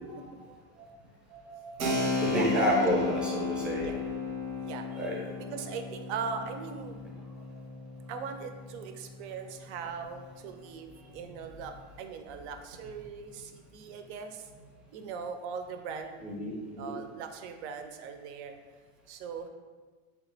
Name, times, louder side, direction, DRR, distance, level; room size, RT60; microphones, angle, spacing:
voice 1, 1.3-3.9 4.9-5.2 16.2-17.0, equal, ahead, -4 dB, 0.5 m, -31 dB
Keyboard (musical), 1.8-10.2, left 3 dB, 85° right, 0.9 m, -35 dB
voice 2, 2.3-3.1 3.8-4.0 4.5-4.8 5.4-7.0 8.1-14.5 14.9-16.2 16.8-18.6 19.1-19.5, right 6 dB, 55° right, 7 dB, 0.5 m, -40 dB
3.3 x 3.0 x 3.3 m, 1.4 s
supercardioid pair, 135°, 41 cm